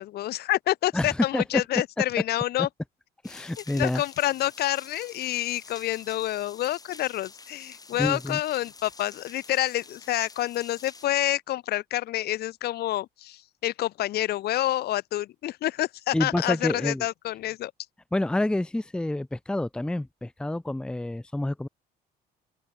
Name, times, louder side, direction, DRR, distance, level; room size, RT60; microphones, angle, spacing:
voice 1, 0.0-2.7 3.7-17.7, left 14 dB, 70° left, 2.1 m, -28 dB
voice 2, 0.9-1.4 3.2-4.0 8.0-8.4 16.1-17.1 18.1-21.7, left 1 dB, 5° left, 0.7 m, -28 dB
sound 1, 3.2-11.1, left 4 dB, 20° left, 3.0 m, -48 dB
open air
cardioid pair, 110°, 17 cm